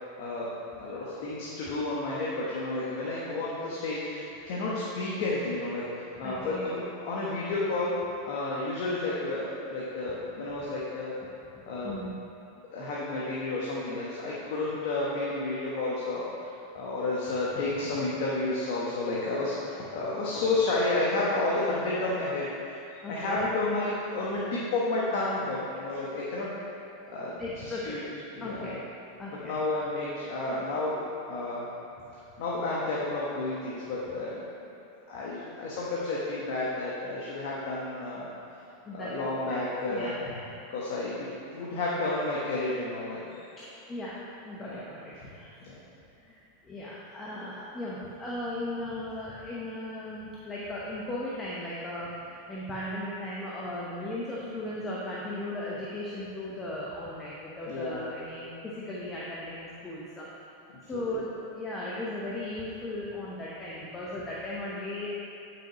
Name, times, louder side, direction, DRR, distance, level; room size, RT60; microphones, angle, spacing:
voice 1, 0.7-5.8 6.2-7.9 8.3-11.2 11.6-12.0 12.7-16.5 16.7-22.8 23.1-26.5 27.1-28.0 28.3-28.8 29.4-31.0 31.3-31.7 32.1-34.4 35.1-38.3 38.9-40.4 40.7-41.3 41.5-43.4 44.7-44.8 45.6-45.7 57.7-58.1 60.9-61.1, left 2 dB, 65° left, -6 dB, 1.2 m, -31 dB
voice 2, 6.2-6.7 11.8-12.1 23.0-23.5 27.4-28.0 28.4-28.7 29.2-29.5 38.8-39.1 39.9-40.7 43.6-45.6 46.1-60.3 60.9-65.1, left 1 dB, 20° left, -6 dB, 1.0 m, -37 dB
8.7 x 6.1 x 3.1 m, 2.7 s
hypercardioid pair, 115°, 0 cm